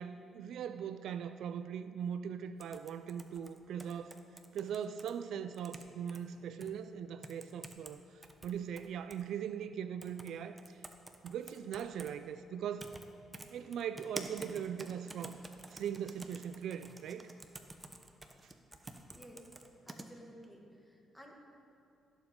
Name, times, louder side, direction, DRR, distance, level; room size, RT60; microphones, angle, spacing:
voice 1, 0.0-4.2 4.5-8.0 8.4-10.8 11.2-12.9 13.5-15.4 15.7-17.3, right 8 dB, 75° right, 11 dB, 0.3 m, -40 dB
sound 1, 2.6-5.1 5.5-6.2 6.6-6.7 7.2-7.9 8.2-9.2 10.0-10.3 10.6-12.1 12.8-13.0 13.3-20.1, right 2 dB, 15° right, 0.8 m, -48 dB
voice 2, 19.1-19.5 19.9-21.4, equal, 5° left, 0 dB, 1.8 m, -54 dB
16.5 x 7.2 x 3.7 m, 2.5 s
cardioid pair, 90°, 0 cm